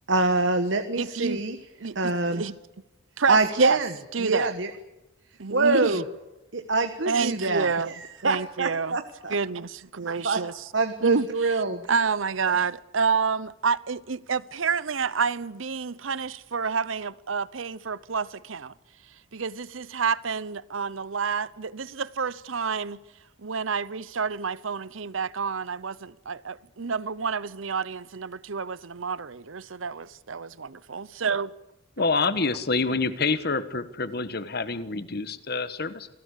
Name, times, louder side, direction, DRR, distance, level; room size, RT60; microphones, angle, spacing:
voice 1, 0.1-1.6 1.9-2.4 3.3-3.9 4.2-4.7 5.5-6.0 6.5-9.3 10.2-10.4 10.7-11.8 12.5-12.6, right 3 dB, 65° right, 1.4 m, -25 dB
voice 2, 1.0-1.4 1.8-2.6 3.2-3.8 4.1-4.5 5.4-6.0 7.1-7.9 8.2-9.0 9.3-10.6 11.0-11.5 11.9-18.7 19.3-23.0 23.4-31.5, right 5 dB, 80° right, 0.8 m, -29 dB
voice 3, 32.0-36.1, left 4 dB, 55° left, 1.4 m, -27 dB
27.5 x 18.0 x 8.4 m
head